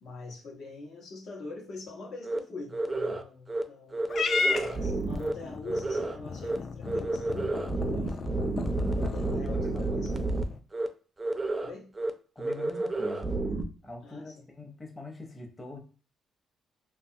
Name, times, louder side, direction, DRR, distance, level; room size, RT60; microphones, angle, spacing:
voice 1, 0.0-4.1 4.4-8.2 8.8-10.1 11.6-11.9 14.0-14.5, left 3 dB, 75° left, 0.8 m, -44 dB
sound 1, 2.2-2.4 2.7-3.2 3.5-3.6 3.9-5.3 5.6-6.2 6.4-6.6 6.8-10.4 10.7-10.9 11.2-11.7 12.0-12.1 12.4-13.6, right 2 dB, 20° right, 0.4 m, -30 dB
Purr / Meow, 4.1-10.6, left 4 dB, 50° left, 0.3 m, -34 dB
voice 2, 9.4-10.2 12.3-13.4 13.8-15.8, left 2 dB, 20° left, 0.7 m, -44 dB
2.6 x 2.3 x 2.7 m
cardioid pair, 90°, 0 cm